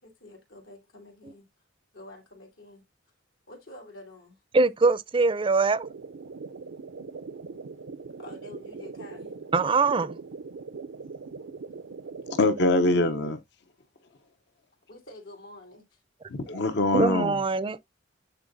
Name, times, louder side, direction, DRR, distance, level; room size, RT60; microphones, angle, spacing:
voice 1, 0.0-1.5 1.9-2.8 3.5-4.4 8.2-9.4 14.9-16.0, left 2 dB, 85° left, 3.3 m, -48 dB
voice 2, 4.5-5.9 9.5-10.2 16.9-17.8, right 3 dB, 25° right, 0.4 m, -23 dB
sound 1, 5.8-13.3, right 4 dB, 75° right, 0.5 m, -41 dB
voice 3, 12.4-13.4 16.3-17.4, left 2 dB, 60° left, 0.8 m, -23 dB
9.9 x 3.9 x 2.6 m
head